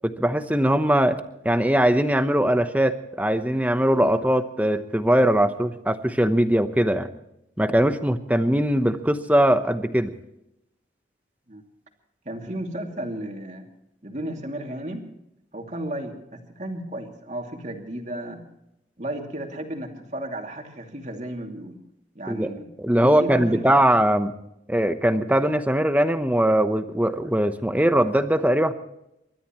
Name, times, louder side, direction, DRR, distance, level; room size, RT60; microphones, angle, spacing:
voice 1, 0.0-7.1 7.6-10.1 22.3-22.5 22.8-24.3 24.7-28.7, right 1 dB, 10° right, 9 dB, 0.9 m, -21 dB
voice 2, 12.2-13.6 14.0-15.0 15.5-18.4 19.0-21.8 22.1-22.7 23.0-23.8, right 1 dB, 40° right, 2 dB, 2.7 m, -33 dB
29.5 x 13.5 x 3.1 m, 0.81 s
head